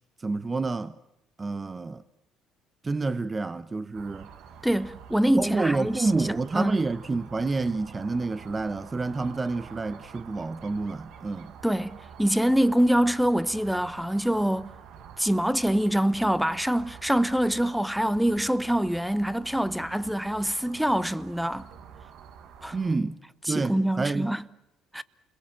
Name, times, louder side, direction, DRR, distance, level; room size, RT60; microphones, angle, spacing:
voice 1, 0.2-0.9 1.4-2.0 2.8-4.3 5.4-11.5 22.7-23.2 23.5-24.3, right 3 dB, 25° right, 0.9 m, -28 dB
sound 1, 3.9-23.0, right 7 dB, 70° right, 1.6 m, -48 dB
voice 2, 4.6-6.3 6.5-6.8 11.6-14.7 15.2-21.7 22.6-22.8 23.5-24.4 24.9-25.0, equal, ahead, 1.0 m, -25 dB
29.5 x 22.0 x 7.6 m
supercardioid pair, 85°, 0 cm